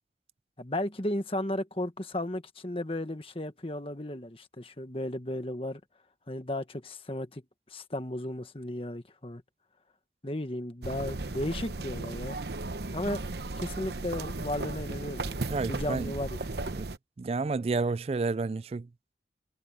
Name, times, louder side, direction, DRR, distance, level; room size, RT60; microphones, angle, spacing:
voice 1, 0.6-5.8 6.3-7.4 7.7-9.4 10.2-12.4 12.9-13.2 13.6-16.4, left 1 dB, 30° left, 1.5 m, -34 dB
sound 1, 10.8-17.0, right 2 dB, 70° right, 0.9 m, -36 dB
voice 2, 15.5-16.1 16.8-16.9 17.2-18.9, right 3 dB, 35° right, 0.3 m, -30 dB
head